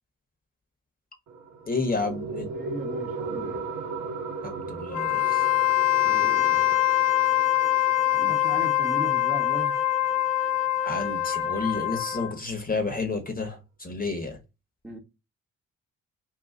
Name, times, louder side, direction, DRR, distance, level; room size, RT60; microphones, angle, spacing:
sound 1, 1.3-12.3, right 4 dB, 55° right, 0.9 m, -38 dB
voice 1, 1.7-2.5 4.4-5.4 10.8-14.4, left 3 dB, 25° left, 1.3 m, -30 dB
voice 2, 2.6-3.6 5.9-6.7 8.0-9.8 14.8-15.0, equal, 5° right, 1.2 m, -37 dB
Wind instrument woodwind instrument, 4.9-12.4, left 13 dB, 60° left, 1.0 m, -24 dB
2.9 x 2.6 x 3.7 m
hypercardioid pair, 45°, 35 cm